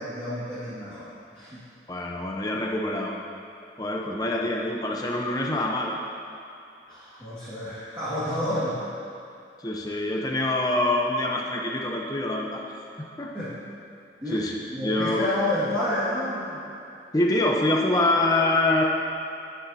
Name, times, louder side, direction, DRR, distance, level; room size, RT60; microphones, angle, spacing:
voice 1, 0.0-1.6 6.9-9.0 13.3-13.5 14.2-16.6, left 1 dB, 15° right, -14 dB, 2.1 m, -30 dB
voice 2, 1.9-3.1 3.8-6.0 9.6-12.6 13.0-13.3 14.3-15.3 17.1-18.8, left 2 dB, 20° left, -1 dB, 0.8 m, -25 dB
10.0 x 9.9 x 2.9 m, 2.6 s
head